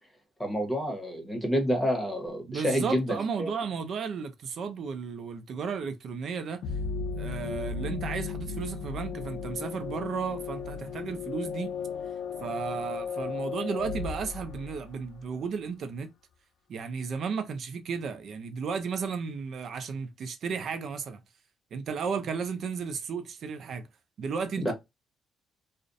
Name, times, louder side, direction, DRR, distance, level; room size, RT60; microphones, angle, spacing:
voice 1, 0.4-3.5 24.6-24.7, equal, 10° left, 1.0 m, -28 dB
voice 2, 2.5-6.6 7.2-11.7 12.4-16.1 16.7-21.2 21.7-23.9 24.2-24.7, right 5 dB, 60° right, 0.5 m, -34 dB
sound 1, 6.6-15.3, left 5 dB, 85° left, 0.4 m, -35 dB
2.4 x 2.1 x 2.5 m
cardioid pair, 90°, 0 cm